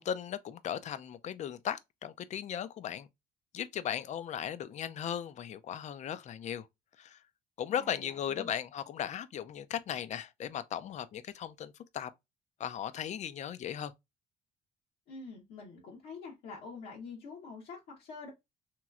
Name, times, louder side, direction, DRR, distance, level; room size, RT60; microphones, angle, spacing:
voice 1, 0.0-3.1 3.5-6.7 7.0-7.2 7.6-12.1 12.6-13.9, left 9 dB, 45° left, 0.4 m, -37 dB
voice 2, 7.7-8.5 15.1-18.3, left 4 dB, 75° left, 1.0 m, -46 dB
3.0 x 3.0 x 2.3 m
cardioid pair, 110°, 17 cm